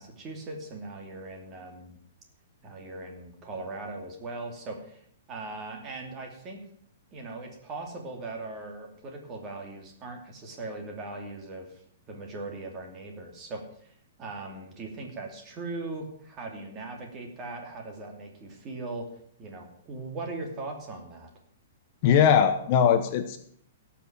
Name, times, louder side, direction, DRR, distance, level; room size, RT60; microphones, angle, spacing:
voice 1, 0.0-2.0 2.6-6.7 7.1-19.1 19.4-21.3, right 2 dB, 20° right, 2 dB, 2.7 m, -39 dB
voice 2, 22.0-23.4, left 8 dB, 35° left, 8 dB, 1.0 m, -20 dB
17.0 x 5.9 x 7.4 m, 0.65 s
hypercardioid pair, 160°, 0 cm